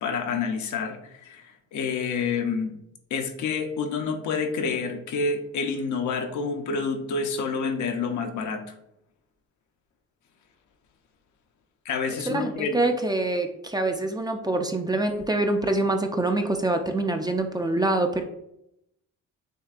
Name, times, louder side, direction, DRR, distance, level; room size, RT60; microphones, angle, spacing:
voice 1, 0.0-2.7 3.1-8.6 11.8-12.8, left 5 dB, 70° left, 5 dB, 0.7 m, -28 dB
voice 2, 12.3-18.2, right 2 dB, 15° right, 5 dB, 0.4 m, -25 dB
6.4 x 2.7 x 2.5 m, 0.80 s
cardioid pair, 90°, 30 cm